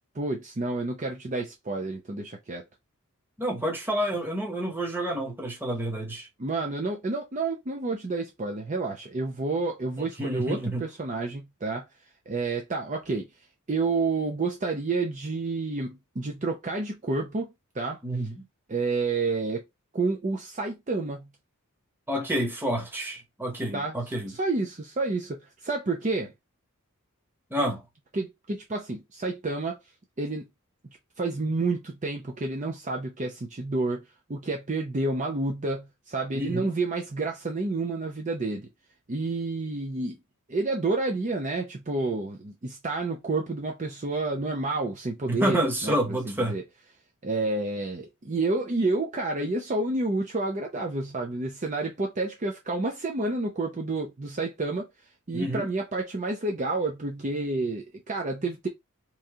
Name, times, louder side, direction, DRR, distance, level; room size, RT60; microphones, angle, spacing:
voice 1, 0.1-2.6 6.4-11.8 12.3-13.3 13.7-18.0 18.7-19.6 19.9-21.3 23.7-24.0 24.3-26.3 28.1-29.8 30.2-30.5 31.2-38.7 39.1-40.2 40.5-46.6 47.2-54.9 55.3-58.7, right 3 dB, 35° right, 0.6 m, -29 dB
voice 2, 3.4-6.3 10.2-10.8 18.0-18.4 22.1-24.3 27.5-27.8 36.3-36.7 45.3-46.6 55.3-55.7, right 1 dB, 10° right, 1.0 m, -29 dB
3.0 x 2.7 x 3.6 m
head